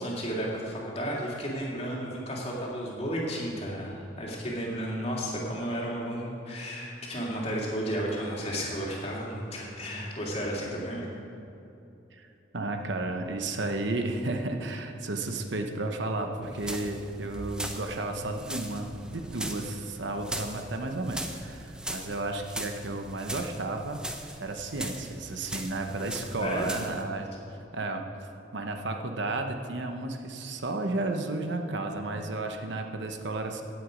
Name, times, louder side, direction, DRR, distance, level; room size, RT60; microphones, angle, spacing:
voice 1, 0.0-11.1 26.4-26.7, equal, 30° left, -3 dB, 2.5 m, -33 dB
voice 2, 12.5-28.0 28.5-33.6, right 2 dB, 65° right, 5 dB, 0.9 m, -33 dB
sound 1, 16.4-27.0, right 1 dB, 5° right, 0.6 m, -40 dB
16.5 x 8.0 x 5.2 m, 2.8 s
head